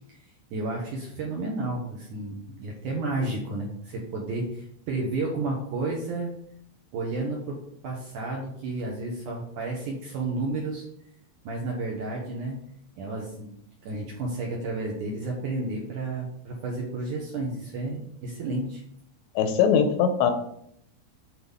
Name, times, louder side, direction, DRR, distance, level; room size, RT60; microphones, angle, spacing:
voice 1, 0.5-6.3 6.9-10.9 11.4-12.6 13.0-18.8, right 2 dB, 70° right, -2 dB, 2.0 m, -32 dB
voice 2, 19.4-20.3, left 7 dB, 85° left, 7 dB, 3.0 m, -21 dB
8.1 x 4.3 x 5.4 m, 0.70 s
omnidirectional pair, 5.0 m